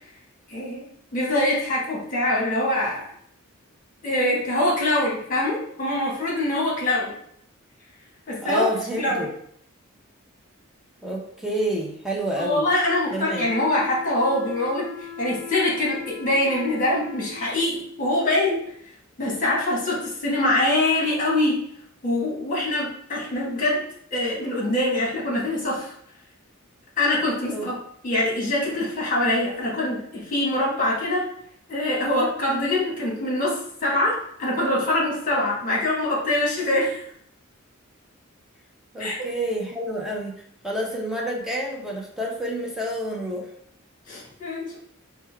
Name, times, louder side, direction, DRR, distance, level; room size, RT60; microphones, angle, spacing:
voice 1, 0.5-0.8 1.1-3.1 4.0-7.1 8.3-8.7 9.0-9.3 12.4-18.6 19.2-21.6 22.0-23.8 24.1-25.9 27.0-27.7 28.0-31.2 31.7-37.0 39.0-39.3 44.1-44.8, left 1 dB, 40° left, -4 dB, 1.6 m, -24 dB
voice 2, 8.4-9.3 11.0-12.6 13.1-13.5 27.5-27.7 38.9-43.5, equal, 5° right, -2 dB, 0.8 m, -29 dB
sound 1, 13.1-17.4, left 6 dB, 60° left, 0.7 m, -38 dB
5.3 x 2.2 x 3.4 m, 0.66 s
head